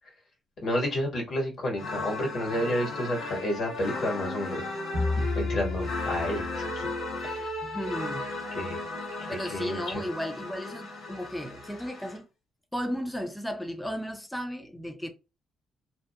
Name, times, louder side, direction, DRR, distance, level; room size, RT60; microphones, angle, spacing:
voice 1, 0.6-4.6 5.2-6.9 7.2-7.5 8.5-8.8 9.2-9.8, left 1 dB, 60° left, 1.5 m, -31 dB
sound 1, 1.8-12.2, left 2 dB, 80° left, 1.4 m, -35 dB
sound 2, 4.9-7.7, left 3 dB, 85° right, 0.7 m, -33 dB
voice 2, 7.6-8.3 9.3-12.3 12.7-15.1, equal, 5° left, 0.5 m, -34 dB
2.8 x 2.1 x 2.3 m
cardioid pair, 90°, 0 cm